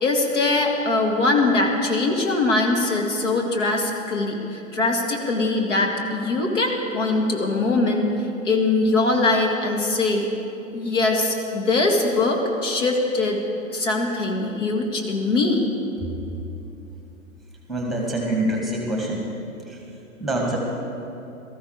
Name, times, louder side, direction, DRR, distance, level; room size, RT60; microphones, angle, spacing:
voice 1, 0.0-8.1 8.4-10.3 10.7-13.4 13.7-15.7, left 2 dB, 60° left, 1 dB, 2.1 m, -22 dB
voice 2, 17.7-19.3 19.7-19.8 20.2-20.6, right 1 dB, ahead, -1 dB, 2.0 m, -25 dB
19.0 x 14.0 x 4.9 m, 2.9 s
figure-of-eight pair, 105°, 41 cm